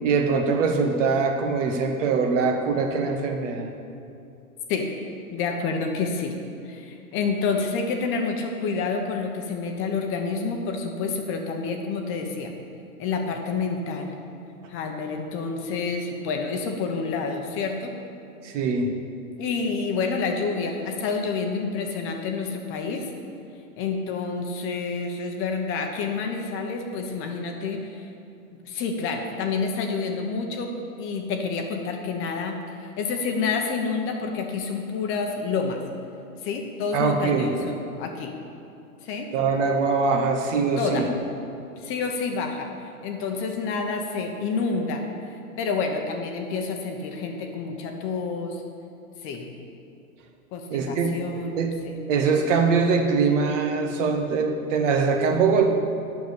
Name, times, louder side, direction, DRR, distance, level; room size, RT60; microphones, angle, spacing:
voice 1, 0.0-3.7 18.4-18.9 36.9-37.5 39.3-41.0 50.7-51.8 52.1-55.7, right 5 dB, 55° right, 4 dB, 1.6 m, -23 dB
voice 2, 5.3-6.4 6.6-12.5 13.0-14.1 14.7-18.0 19.4-23.1 23.8-28.1 28.6-30.7 31.0-32.6 33.0-35.8 36.4-38.3 39.0-39.3 40.8-41.1 41.8-45.0 45.6-48.6 49.2-49.5 50.5-51.9, left 4 dB, 30° left, 3 dB, 1.0 m, -28 dB
9.2 x 7.0 x 8.5 m, 2.6 s
hypercardioid pair, 135°, 45 cm